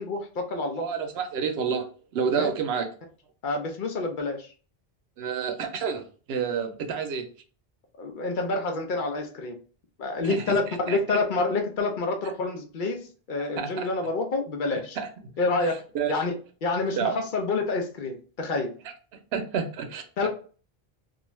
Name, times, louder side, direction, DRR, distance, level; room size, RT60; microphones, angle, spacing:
voice 1, 0.0-0.9 2.3-2.5 3.4-4.5 8.0-9.6 10.0-15.0 15.4-15.7 16.1-16.3 16.6-18.7 20.2-20.3, left 3 dB, 60° left, 3 dB, 0.6 m, -28 dB
voice 2, 0.8-2.9 5.2-7.2 10.2-10.4 10.9-11.0 13.6-13.9 15.0-15.1 15.6-16.2 17.0-17.2 19.3-20.3, right 6 dB, 80° right, 6 dB, 0.8 m, -29 dB
2.5 x 2.2 x 3.0 m, 0.39 s
omnidirectional pair, 1.0 m